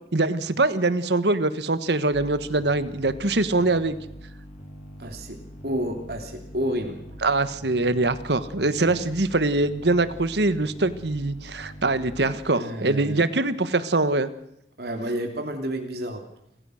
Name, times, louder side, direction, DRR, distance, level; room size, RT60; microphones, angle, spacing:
voice 1, 0.1-4.0 7.2-14.3, right 2 dB, 80° right, 13 dB, 1.4 m, -23 dB
sound 1, 2.1-12.4, equal, 35° left, 6.3 m, -43 dB
voice 2, 5.0-5.4 5.6-7.0 8.9-9.0 12.5-13.3 14.8-16.2, equal, 65° right, 3 dB, 3.0 m, -30 dB
28.0 x 15.5 x 6.5 m, 0.79 s
head